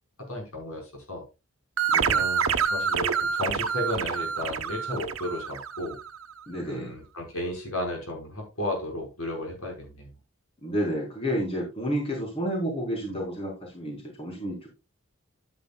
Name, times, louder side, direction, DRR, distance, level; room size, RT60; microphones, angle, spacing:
voice 1, 0.2-1.2 2.0-6.0 6.7-10.1, left 1 dB, 80° left, 1 dB, 5.2 m, -34 dB
sound 1, 1.8-6.1, right 6 dB, 75° right, 1.0 m, -27 dB
voice 2, 1.9-2.2 6.5-6.9 10.6-14.7, equal, 25° left, -1 dB, 4.1 m, -30 dB
11.5 x 9.5 x 2.3 m, 0.27 s
head